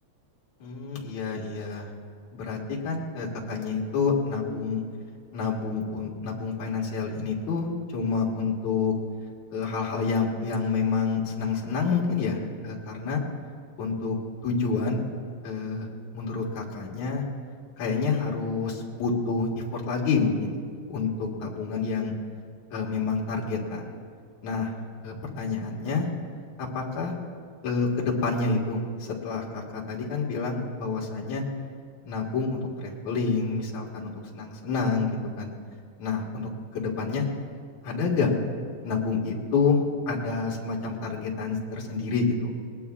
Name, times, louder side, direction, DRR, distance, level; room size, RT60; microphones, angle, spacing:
voice 1, 0.6-1.9 2.3-4.8 5.3-8.9 9.5-13.2 13.8-14.2 14.4-15.0 15.4-15.9 16.1-17.2 17.8-20.5 20.9-22.1 22.7-23.9 24.4-24.7 25.0-26.1 26.6-27.1 27.6-31.4 32.0-35.5 36.0-37.3 37.8-38.3 38.8-42.5, left 4 dB, 75° left, -3 dB, 3.1 m, -28 dB
22.5 x 19.0 x 2.4 m, 2.1 s
omnidirectional pair, 3.3 m